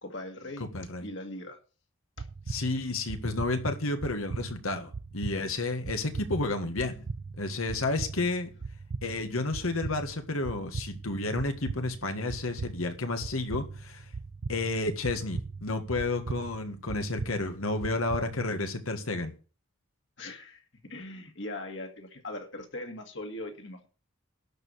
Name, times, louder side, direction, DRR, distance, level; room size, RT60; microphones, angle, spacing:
voice 1, 0.0-0.7 1.0-1.6 2.2-2.3 20.2-23.9, left 1 dB, 60° left, 2.2 m, -40 dB
voice 2, 0.7-1.1 2.5-7.1 7.4-8.5 9.0-14.1 14.5-19.3, left 2 dB, 90° left, 1.8 m, -31 dB
sound 1, 2.2-18.5, right 4 dB, 75° right, 0.6 m, -40 dB
12.0 x 4.8 x 8.5 m
head